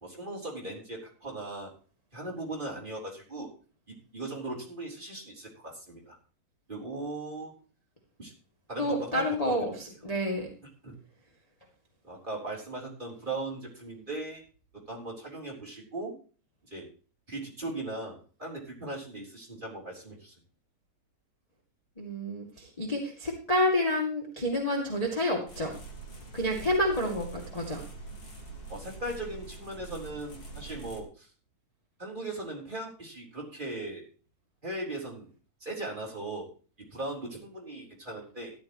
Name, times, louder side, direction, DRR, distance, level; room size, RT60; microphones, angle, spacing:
voice 1, 0.0-1.7 2.1-3.5 3.9-6.2 6.7-7.5 8.2-8.3 8.7-9.6 10.8-11.0 12.0-14.4 14.9-16.2 16.7-16.9 17.3-20.3 28.7-31.3 32.0-34.0 34.6-35.3 35.6-36.5 36.9-38.5, right 2 dB, 15° right, -3 dB, 3.6 m, -38 dB
voice 2, 8.8-10.5 22.0-25.7 26.3-27.8, left 1 dB, 15° left, -2 dB, 1.8 m, -29 dB
sound 1, 25.5-31.0, right 3 dB, 30° left, 2.4 m, -44 dB
14.0 x 12.0 x 3.1 m, 0.38 s
omnidirectional pair, 3.9 m